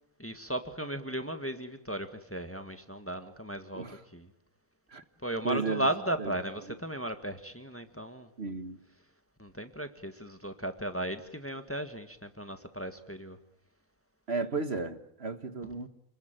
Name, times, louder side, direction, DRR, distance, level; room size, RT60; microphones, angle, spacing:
voice 1, 0.2-3.8 4.1-4.3 5.2-8.3 9.4-13.4, right 1 dB, 10° left, 1.7 m, -36 dB
voice 2, 5.4-5.9 6.2-6.3 8.4-8.8 14.3-15.9, right 4 dB, 50° right, 1.6 m, -34 dB
30.0 x 21.0 x 9.1 m
omnidirectional pair, 1.4 m